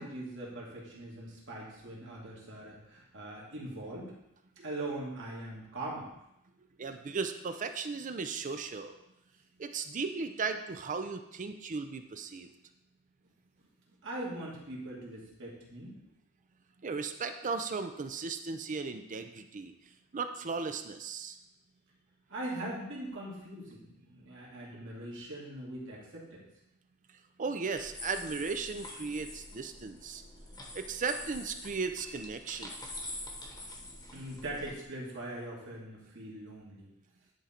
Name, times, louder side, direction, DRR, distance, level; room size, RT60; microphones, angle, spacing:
voice 1, 0.0-4.1 4.6-6.1 14.0-16.0 22.3-26.4 33.1-33.2 34.1-36.9, right 1 dB, 60° right, -4 dB, 2.2 m, -41 dB
voice 2, 6.8-9.0 9.6-12.5 16.8-19.7 20.1-21.4 27.4-30.2 30.7-32.7, right 4 dB, 35° right, 8 dB, 0.5 m, -36 dB
sound 1, 27.7-34.8, left 1 dB, 20° left, 1.1 m, -45 dB
10.0 x 3.8 x 4.4 m, 0.84 s
head